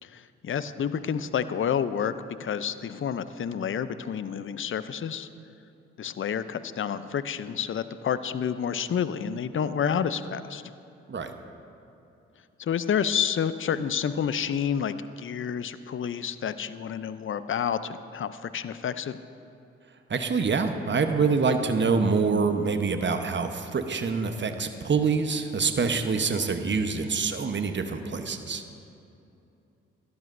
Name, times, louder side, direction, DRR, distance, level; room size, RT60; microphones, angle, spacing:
voice 1, 0.0-2.1 2.4-5.3 6.0-10.6 12.6-19.2, left 8 dB, 40° left, 13 dB, 0.6 m, -29 dB
voice 2, 20.1-28.6, right 4 dB, 35° right, 7 dB, 1.0 m, -26 dB
17.0 x 12.0 x 2.6 m, 2.8 s
hypercardioid pair, 40°, 31 cm